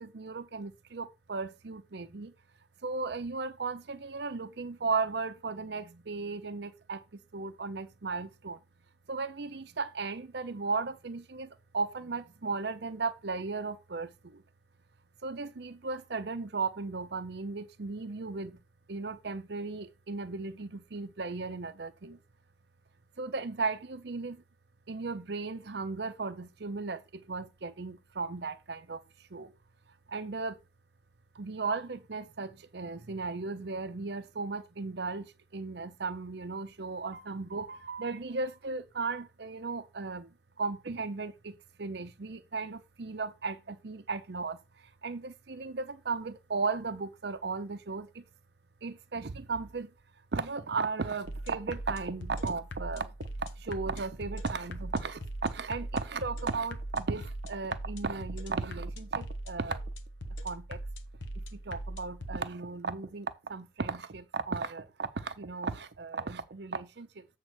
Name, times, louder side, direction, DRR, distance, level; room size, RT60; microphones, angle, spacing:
voice 1, 0.0-2.3 2.8-7.0 7.3-8.6 9.1-14.4 15.2-18.6 18.9-22.2 23.2-24.4 24.9-29.0 29.3-29.5 30.1-30.6 31.3-48.2 48.8-49.9 50.3-53.1 53.4-59.9 60.3-60.8 61.4-67.3, right 4 dB, 60° right, 0.7 m, -36 dB
sound 1, 51.2-62.4, right 1 dB, 85° left, 1.1 m, -41 dB
7.9 x 3.6 x 6.1 m
head